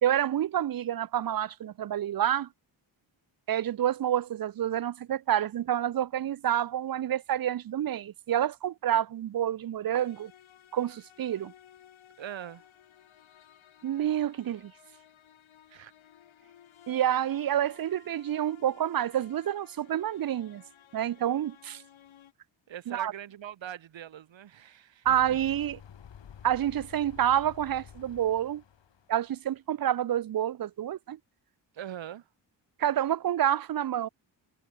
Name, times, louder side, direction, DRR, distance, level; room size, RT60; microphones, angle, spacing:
voice 1, 0.0-2.5 3.5-10.3 10.7-11.5 13.8-14.7 16.9-20.6 20.9-21.8 22.9-23.1 25.1-25.8 26.4-28.6 29.1-31.2 32.8-34.1, right 11 dB, 50° right, 0.6 m, -28 dB
sound 1, 9.9-22.3, left 10 dB, 90° left, 4.6 m, -57 dB
voice 2, 12.2-12.6 15.7-15.9 22.7-25.4 31.7-32.3, right 10 dB, 75° right, 1.6 m, -42 dB
sound 2, 25.0-29.3, left 8 dB, 70° left, 3.3 m, -50 dB
cardioid pair, 75°, 46 cm